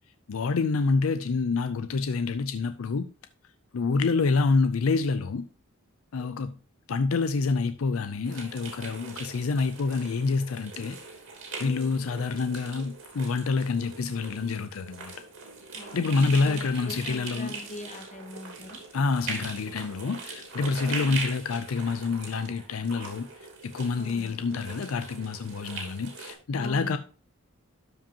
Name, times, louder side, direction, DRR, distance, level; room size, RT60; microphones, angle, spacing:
voice 1, 0.3-3.1 3.7-5.4 6.1-6.5 6.9-11.0 11.6-15.1 15.9-17.5 18.9-23.3 23.6-27.0, left 4 dB, 70° left, 0.5 m, -27 dB
voice 2, 3.8-4.1 6.1-6.6 11.6-12.1 15.7-18.8 24.0-24.4 26.5-27.0, left 1 dB, 30° left, 1.9 m, -43 dB
sound 1, 8.2-26.3, right 4 dB, 65° right, 2.9 m, -41 dB
12.5 x 5.1 x 2.9 m
head